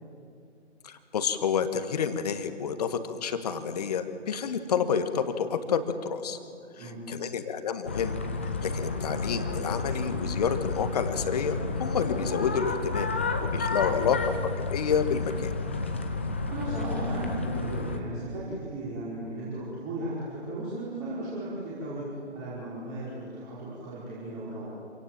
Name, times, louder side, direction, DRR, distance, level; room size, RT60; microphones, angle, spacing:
voice 1, 0.8-6.4 6.7-8.2 8.6-13.1 13.5-14.2 14.6-15.5, left 7 dB, 35° left, 9 dB, 1.5 m, -29 dB
voice 2, 6.8-7.1 13.8-14.1 16.5-24.7, right 2 dB, 20° right, -8 dB, 5.0 m, -36 dB
sound 1, 7.9-18.0, left 3 dB, 10° left, 0.5 m, -31 dB
26.5 x 17.5 x 7.5 m, 2.4 s
figure-of-eight pair, 140°, 35 cm